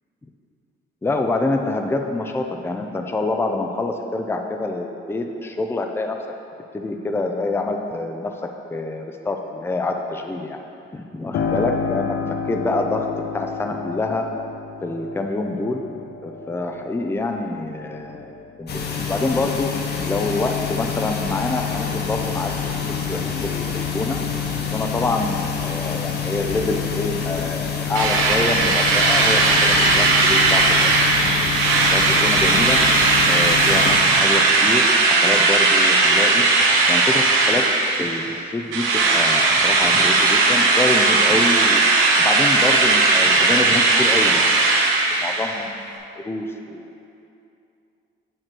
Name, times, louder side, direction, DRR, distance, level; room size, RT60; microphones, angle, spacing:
voice 1, 1.0-6.2 6.7-10.6 10.9-12.2 12.5-13.1 13.3-14.3 14.8-18.7 19.0-19.7 20.1-24.2 24.6-30.8 31.9-32.8 33.2-36.5 36.9-37.7 38.0-38.2 38.5-41.8 42.2-44.5 45.2-47.3, left 2 dB, 10° left, 4 dB, 0.5 m, -26 dB
Piano, 11.3-19.8 20.2-21.2, left 5 dB, 80° left, 0.6 m, -31 dB
sound 1, 18.7-35.4, left 6 dB, 55° left, 0.8 m, -27 dB
Drill, 28.0-38.3 38.7-45.6, right 3 dB, 90° right, 1.0 m, -17 dB
9.0 x 3.1 x 6.0 m, 2.7 s
cardioid pair, 90°, 20 cm